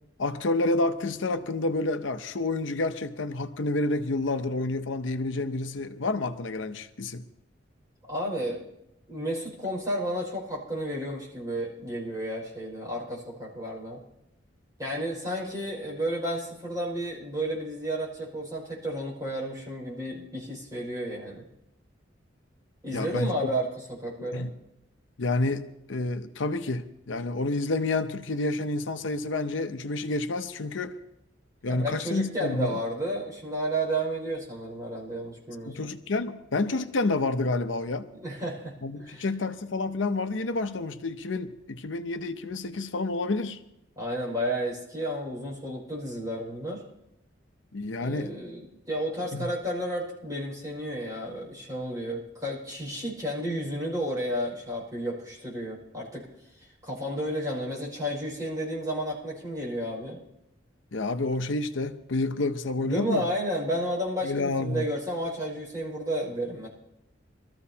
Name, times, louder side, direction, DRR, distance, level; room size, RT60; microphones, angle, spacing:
voice 1, 0.2-7.2 22.9-23.5 24.2-24.5 25.2-31.0 31.6-32.8 35.7-38.1 38.8-43.6 47.7-48.3 49.3-49.5 60.9-63.3 64.2-64.8, left 2 dB, 85° left, 0.8 m, -29 dB
voice 2, 8.0-8.7 9.1-14.0 14.8-21.5 22.8-24.5 31.7-35.9 38.1-39.3 44.0-46.8 48.0-56.3 56.5-60.2 62.8-66.7, right 1 dB, 20° right, 5.4 m, -32 dB
23.0 x 14.0 x 2.9 m
head